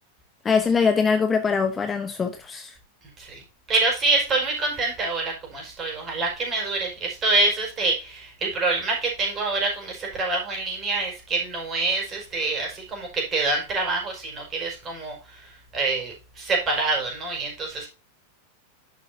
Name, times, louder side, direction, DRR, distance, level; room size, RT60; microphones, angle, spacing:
voice 1, 0.4-2.7, left 5 dB, 20° left, 0.9 m, -22 dB
voice 2, 3.7-17.9, right 3 dB, 25° right, 4.9 m, -26 dB
10.5 x 7.0 x 2.8 m
figure-of-eight pair, 90°, 0 cm